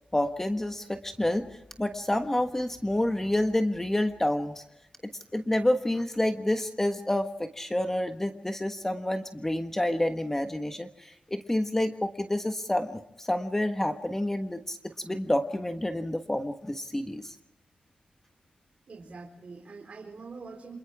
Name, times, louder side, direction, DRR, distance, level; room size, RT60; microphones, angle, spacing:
voice 1, 0.1-1.4 1.8-4.6 5.3-17.3, left 1 dB, 15° left, 6 dB, 1.4 m, -28 dB
voice 2, 18.9-20.8, right 4 dB, 50° right, 0 dB, 4.3 m, -44 dB
29.5 x 26.5 x 3.6 m, 0.80 s
wide cardioid pair, 90°, 3 cm